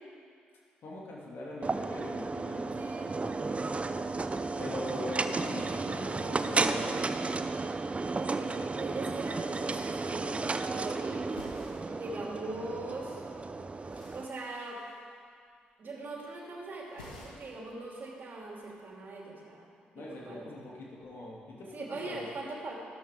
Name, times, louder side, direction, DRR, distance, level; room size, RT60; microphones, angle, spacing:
voice 1, 0.8-2.8 4.6-7.0 19.9-22.3, left 1 dB, 55° left, -3 dB, 2.7 m, -41 dB
sound 1, 1.6-14.3, right 3 dB, 25° right, 0.6 m, -33 dB
voice 2, 2.4-3.5 8.1-11.3 11.9-13.2 14.1-14.8 15.8-19.7 20.0-20.5 21.7-22.7, right 2 dB, 45° right, -2 dB, 2.8 m, -41 dB
sound 2, 10.2-10.8 11.1-12.8 13.1-15.6 15.8-16.4 16.6-17.7 17.9-18.7, left 1 dB, 85° left, 1.7 m, -53 dB
13.0 x 12.0 x 3.8 m, 2.1 s
figure-of-eight pair, 40°, 5 cm